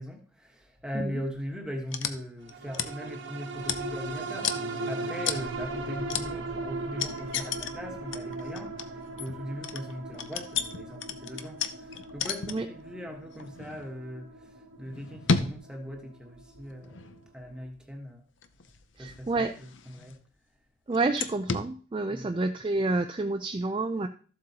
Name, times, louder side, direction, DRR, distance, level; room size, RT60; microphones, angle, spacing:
voice 1, 0.0-17.0 17.3-18.2 19.0-20.2 22.1-22.3, equal, 5° right, 1.3 m, -39 dB
sound 1, 1.9-2.2 2.4-3.0 3.6-4.1 4.4-4.6 5.2-5.5 6.1-6.3 7.0-7.8 8.1-12.8 13.3-14.0 14.8-15.6 16.5-17.4 18.4-20.3 20.9-21.7, left 6 dB, 70° left, 0.6 m, -33 dB
sound 2, 2.5-17.2 17.6-17.7, right 2 dB, 70° right, 1.1 m, -38 dB
voice 2, 19.0-19.5 20.9-24.1, right 3 dB, 25° right, 0.4 m, -29 dB
14.0 x 7.6 x 2.9 m
head